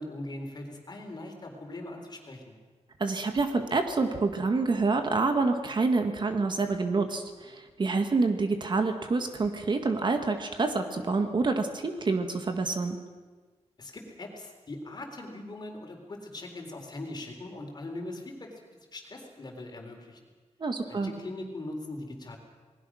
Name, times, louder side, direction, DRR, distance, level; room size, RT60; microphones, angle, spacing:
voice 1, 0.0-2.5 13.8-18.5 18.9-20.2 20.8-22.4, left 2 dB, 35° left, 3 dB, 4.2 m, -40 dB
voice 2, 3.0-13.0 20.6-21.1, right 3 dB, 40° right, 6 dB, 1.7 m, -27 dB
28.0 x 20.0 x 6.4 m, 1.4 s
wide cardioid pair, 150°, 12 cm